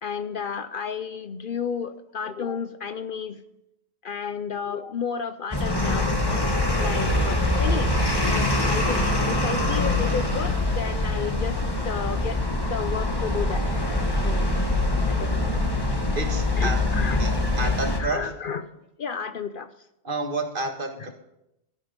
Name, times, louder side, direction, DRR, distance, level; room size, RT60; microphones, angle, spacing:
voice 1, 0.0-3.4 4.0-6.1 6.8-7.9 8.3-11.6 11.8-12.4 12.7-13.7 14.2-14.6 15.1-15.6 16.6-17.7 18.0-18.6 19.0-19.7, left 6 dB, 55° left, 11 dB, 0.8 m, -32 dB
sound 1, 5.5-18.0, left 2 dB, 20° left, 1.6 m, -24 dB
voice 2, 16.1-18.3 20.0-21.1, right 2 dB, 50° right, 5 dB, 1.7 m, -30 dB
13.0 x 10.5 x 5.2 m, 0.83 s
omnidirectional pair, 1.1 m